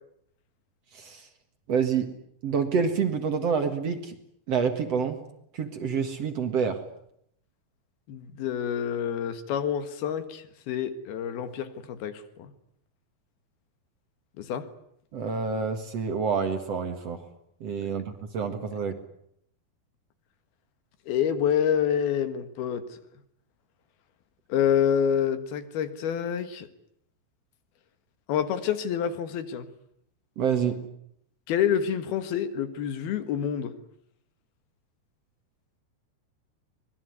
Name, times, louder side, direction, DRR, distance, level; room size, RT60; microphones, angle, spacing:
voice 1, 0.9-1.2 1.7-2.1 2.4-4.1 4.5-5.2 5.5-6.8 15.1-17.2 17.6-18.9 30.4-30.8, right 6 dB, 50° right, 7 dB, 2.5 m, -27 dB
voice 2, 8.1-12.5 14.4-14.7 21.1-23.0 24.5-26.7 28.3-29.7 31.5-33.8, left 8 dB, 80° left, 11 dB, 3.5 m, -27 dB
24.5 x 21.0 x 9.6 m, 0.73 s
omnidirectional pair, 4.4 m